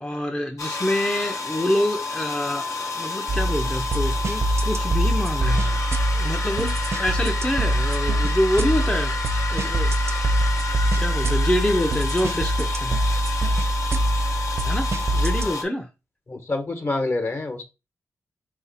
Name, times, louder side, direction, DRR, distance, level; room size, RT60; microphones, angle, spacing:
voice 1, 0.0-9.2 9.5-9.9 11.0-13.0 14.6-15.9, left 1 dB, 15° left, 0.6 m, -26 dB
sound 1, 0.6-15.6, left 4 dB, 65° left, 0.8 m, -30 dB
sound 2, 3.3-15.5, right 1 dB, 50° right, 0.6 m, -24 dB
voice 2, 16.3-17.6, left 2 dB, 45° left, 1.1 m, -27 dB
4.0 x 2.7 x 4.0 m
cardioid pair, 70°, 6 cm